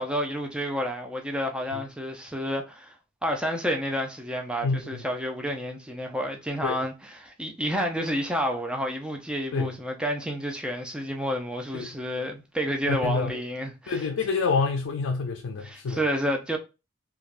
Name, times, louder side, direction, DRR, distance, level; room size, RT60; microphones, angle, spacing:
voice 1, 0.0-3.0 3.2-14.1 15.6-16.6, equal, 5° right, 0.4 m, -30 dB
voice 2, 4.6-5.0 6.6-6.8 9.5-9.8 11.7-12.0 12.9-13.4 13.9-16.0, left 4 dB, 80° left, 0.4 m, -28 dB
3.3 x 2.4 x 2.4 m
head